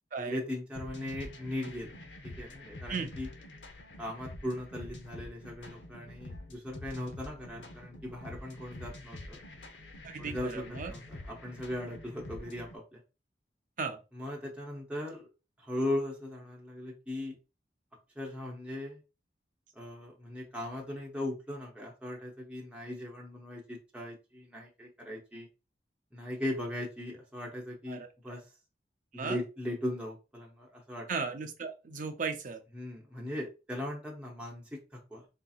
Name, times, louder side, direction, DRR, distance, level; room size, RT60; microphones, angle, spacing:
voice 1, 0.2-2.0 2.4-3.3 4.0-9.4 10.2-10.6 10.9-13.0 14.1-15.3 15.6-17.4 18.2-19.0 19.7-25.5 26.1-28.4 29.1-31.1 32.7-34.8 35.1-35.2, left 1 dB, 5° right, -3 dB, 0.8 m, -38 dB
sound 1, 0.8-12.8, left 1 dB, 85° left, 0.8 m, -47 dB
voice 2, 10.0-10.9 13.8-14.0 27.9-28.4 29.1-29.4 31.1-32.6, right 5 dB, 45° right, 6 dB, 0.6 m, -36 dB
3.7 x 2.8 x 2.3 m, 0.30 s
head